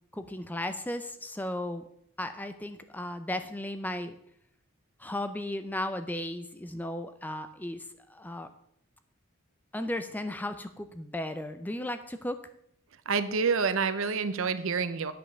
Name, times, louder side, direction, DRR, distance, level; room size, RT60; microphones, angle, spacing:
voice 1, 0.1-1.8 2.2-4.2 5.0-8.5 9.7-12.4, left 1 dB, 10° left, 9 dB, 0.4 m, -35 dB
voice 2, 13.1-15.1, right 5 dB, 65° right, 12 dB, 0.6 m, -28 dB
8.7 x 5.2 x 6.8 m, 0.73 s
head